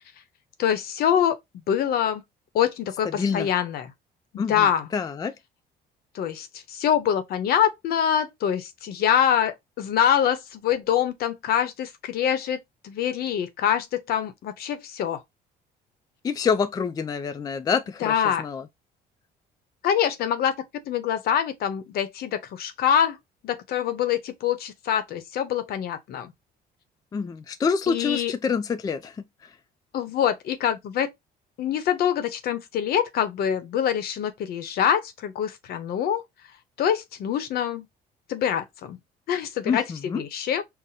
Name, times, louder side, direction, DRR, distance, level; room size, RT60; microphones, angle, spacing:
voice 1, 0.6-1.4 1.7-2.2 2.5-3.9 4.3-4.9 6.1-12.6 12.8-15.2 18.0-18.5 19.8-20.5 20.9-23.2 23.4-26.3 27.9-28.3 29.9-31.1 31.6-36.2 36.8-37.9 38.3-39.0 39.3-40.6, left 9 dB, 65° left, 0.8 m, -25 dB
voice 2, 3.1-3.5 4.4-5.3 16.2-18.7 27.1-29.1 39.7-40.2, left 6 dB, 20° left, 0.3 m, -27 dB
5.8 x 2.1 x 2.6 m
cardioid pair, 110°, 17 cm